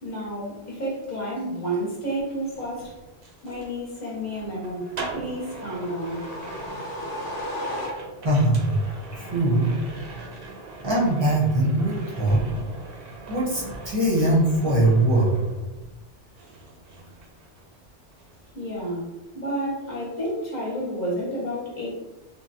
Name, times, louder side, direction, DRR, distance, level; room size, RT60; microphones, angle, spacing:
voice 1, 0.0-2.9 3.4-4.9 5.1-6.2 18.5-21.9, equal, 40° left, -6 dB, 1.0 m, -30 dB
sound 1, 1.9-16.1 16.4-17.8 18.1-18.5, right 3 dB, 60° right, 0.8 m, -41 dB
sound 2, 5.2-8.4, left 1 dB, 90° left, 1.0 m, -35 dB
voice 2, 8.2-8.8 9.1-9.7 10.8-12.4 13.3-15.3, right 1 dB, 25° right, -5 dB, 0.7 m, -21 dB
3.3 x 2.2 x 2.6 m, 1.1 s
omnidirectional pair, 1.2 m